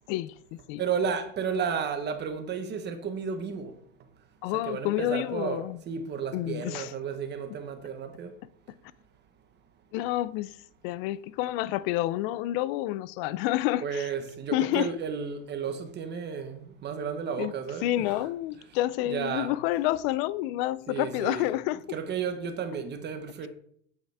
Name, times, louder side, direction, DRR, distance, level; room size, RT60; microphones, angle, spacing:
voice 1, 0.1-0.8 4.4-5.8 6.3-6.9 9.9-10.6 10.8-14.1 14.5-14.9 17.4-17.5 17.8-22.0, left 15 dB, 50° left, 0.5 m, -29 dB
voice 2, 0.8-3.7 4.7-8.3 13.8-18.2 19.1-19.5 20.9-21.5 21.9-23.5, right 6 dB, 25° right, 1.2 m, -33 dB
8.2 x 7.2 x 3.5 m
supercardioid pair, 130°, 38 cm